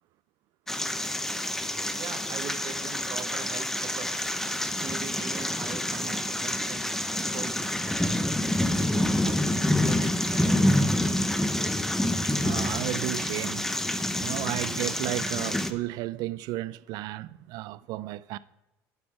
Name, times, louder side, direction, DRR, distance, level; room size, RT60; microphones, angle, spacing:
sound 1, 0.7-15.7, left 1 dB, 5° left, 0.6 m, -27 dB
voice 1, 1.9-4.3 4.8-7.6 8.6-11.0, right 7 dB, 45° right, 1.1 m, -41 dB
voice 2, 12.2-13.7 14.2-18.4, right 17 dB, 65° right, 0.4 m, -33 dB
9.5 x 6.2 x 4.8 m
supercardioid pair, 110°, 7 cm